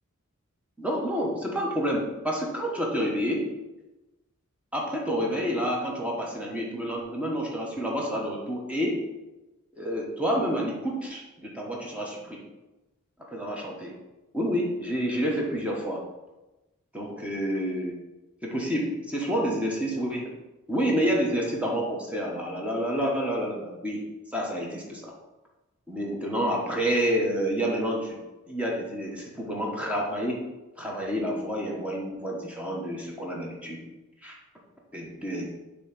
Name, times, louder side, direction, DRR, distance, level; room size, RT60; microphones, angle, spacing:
voice 1, 0.8-3.5 4.7-9.0 9.7-12.4 13.3-13.9 14.3-16.0 16.9-17.9 18.4-20.3 20.7-24.0 24.3-25.1 25.9-28.2 28.5-30.4 30.8-33.8 34.2-34.4 34.9-35.5, equal, 5° right, -2 dB, 1.1 m, -29 dB
7.0 x 3.0 x 6.0 m, 1.1 s
head